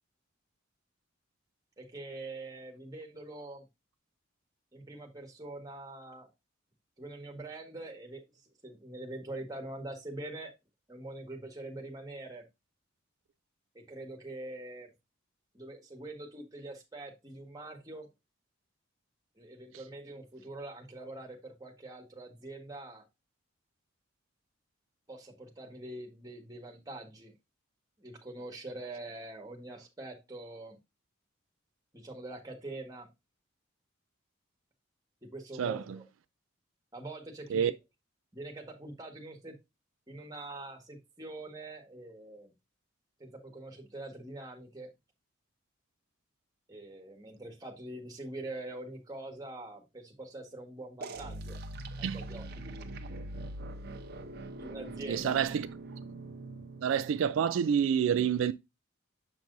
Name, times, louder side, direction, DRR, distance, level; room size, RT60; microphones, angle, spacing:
voice 1, 1.8-3.7 4.7-6.3 7.0-10.5 10.9-12.4 13.7-14.9 15.5-18.1 19.4-23.0 25.1-27.3 28.0-30.8 31.9-33.1 35.2-36.0 36.9-37.7 38.3-39.5 40.1-42.5 43.2-44.9 46.7-51.6 52.0-52.9 54.6-55.4, right 2 dB, 20° right, 1.6 m, -44 dB
sound 1, 51.0-57.6, right 2 dB, 50° right, 0.8 m, -43 dB
voice 2, 55.1-55.7 56.8-58.5, right 8 dB, 75° right, 0.3 m, -28 dB
7.2 x 6.0 x 2.6 m
head